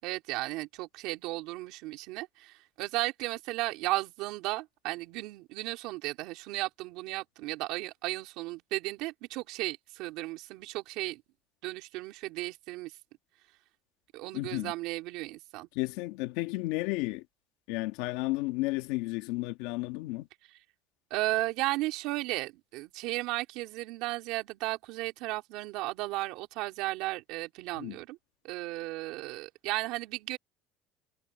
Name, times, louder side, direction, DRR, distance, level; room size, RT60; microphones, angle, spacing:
voice 1, 0.0-11.2 11.6-12.9 14.1-15.7 21.1-28.2 28.4-30.4, right 19 dB, 65° right, 3.4 m, -35 dB
voice 2, 14.3-14.7 15.7-17.3 17.7-20.3 27.8-28.0, left 20 dB, 80° left, 1.9 m, -33 dB
cardioid pair, 160°, 0 cm